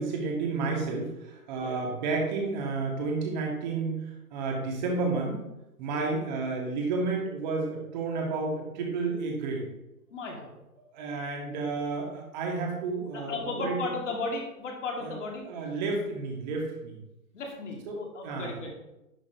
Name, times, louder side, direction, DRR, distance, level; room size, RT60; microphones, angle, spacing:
voice 1, 0.0-5.4 5.8-9.6 10.9-13.9 15.0-15.1 15.4-17.0 17.9-18.6, right 3 dB, 30° right, 0 dB, 1.7 m, -31 dB
voice 2, 10.1-10.5 13.1-15.5 17.3-18.7, left 3 dB, 50° left, 1 dB, 1.9 m, -35 dB
11.0 x 5.8 x 2.7 m, 0.94 s
figure-of-eight pair, 140°, 46 cm